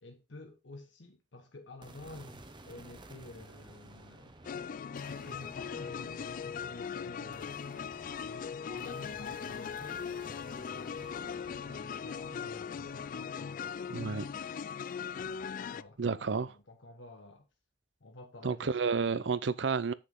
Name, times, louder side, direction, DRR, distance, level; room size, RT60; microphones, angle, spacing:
voice 1, 0.0-4.3 5.1-7.6 8.2-11.3 11.6-13.9 15.7-17.5 18.0-19.3, left 2 dB, 90° left, 1.1 m, -50 dB
sound 1, 1.8-16.1, right 2 dB, 25° right, 0.9 m, -54 dB
sound 2, 4.4-15.8, left 7 dB, 45° left, 0.3 m, -39 dB
voice 2, 13.9-14.2 16.0-16.5 18.4-19.9, right 5 dB, 70° right, 0.6 m, -31 dB
7.5 x 6.6 x 3.7 m
head